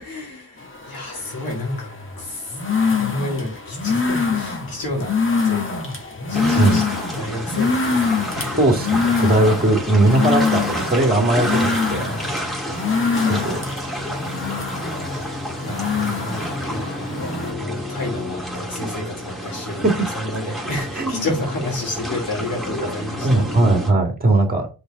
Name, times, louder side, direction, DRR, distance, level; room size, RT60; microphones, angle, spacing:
voice 1, 0.0-8.8 9.1-9.3 12.0-12.6 15.1-23.5, left 2 dB, 70° left, 2.2 m, -31 dB
sound 1, 0.6-17.5, left 5 dB, 35° left, 1.9 m, -24 dB
sound 2, 6.3-23.9, equal, ahead, 2.6 m, -30 dB
voice 2, 8.6-12.1 13.3-13.6 19.8-19.9 21.0-21.3 22.8-22.9 23.2-24.7, right 2 dB, 25° right, 2.1 m, -19 dB
5.2 x 4.3 x 5.3 m
wide cardioid pair, 75°, 37 cm